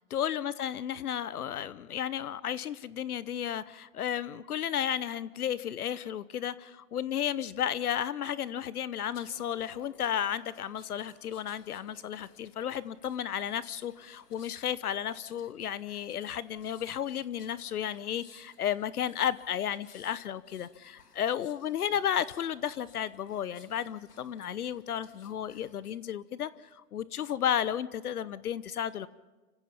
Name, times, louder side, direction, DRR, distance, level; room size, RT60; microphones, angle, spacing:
voice 1, 0.1-29.1, left 9 dB, 75° left, 17 dB, 0.9 m, -33 dB
sound 1, 9.1-26.1 26.5-26.7, left 5 dB, 90° left, 2.6 m, -60 dB
29.5 x 16.0 x 5.8 m, 1.2 s
hypercardioid pair, 145°, 45 cm